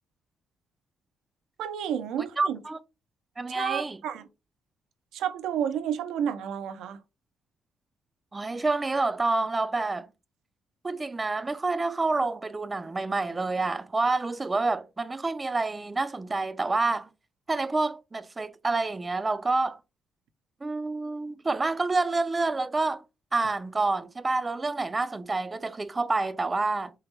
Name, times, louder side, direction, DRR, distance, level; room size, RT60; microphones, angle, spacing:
voice 1, 1.6-2.6 3.5-4.2 5.1-7.0, right 9 dB, 85° right, 0.5 m, -31 dB
voice 2, 2.4-2.8 3.4-4.0 8.3-10.1 10.8-17.1 17.5-19.8 20.6-23.0 23.3-26.9, right 3 dB, 25° right, 0.3 m, -28 dB
4.5 x 2.0 x 3.2 m
cardioid pair, 90°, 0 cm